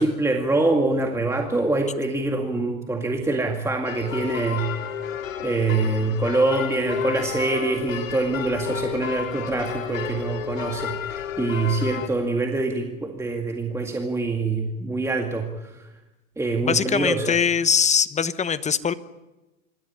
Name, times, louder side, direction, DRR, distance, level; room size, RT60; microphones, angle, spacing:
voice 1, 0.0-4.7 5.4-15.9 16.4-17.4, right 3 dB, 5° right, 2 dB, 2.1 m, -25 dB
sound 1, 3.9-12.1, left 9 dB, 85° left, 3.1 m, -31 dB
voice 2, 16.6-18.9, left 6 dB, 20° left, 14 dB, 1.1 m, -22 dB
26.0 x 14.0 x 9.9 m, 1.0 s
hypercardioid pair, 100°, 39 cm